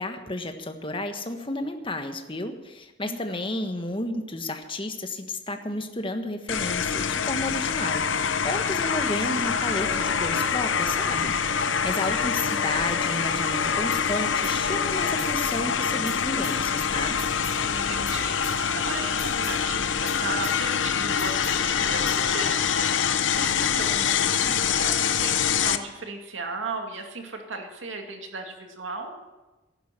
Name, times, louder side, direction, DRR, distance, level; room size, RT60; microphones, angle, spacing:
voice 1, 0.0-17.2, left 2 dB, 25° left, 6 dB, 1.4 m, -32 dB
voice 2, 3.0-3.6 12.1-12.3 17.6-29.2, right 3 dB, 85° right, 3 dB, 2.3 m, -36 dB
sound 1, 6.5-25.8, left 7 dB, 80° left, 0.8 m, -25 dB
sound 2, 9.7-15.3, right 2 dB, 20° right, 0.8 m, -45 dB
sound 3, 14.4-14.6 14.9-15.6 15.9-16.2 16.4-16.6 16.9-17.6 17.9-18.2 18.4-18.6 18.9-19.6 19.9-20.2 20.4-20.6 20.9-21.6 21.9-22.2, left 1 dB, ahead, 4.8 m, -41 dB
15.0 x 11.5 x 7.5 m, 1.1 s
head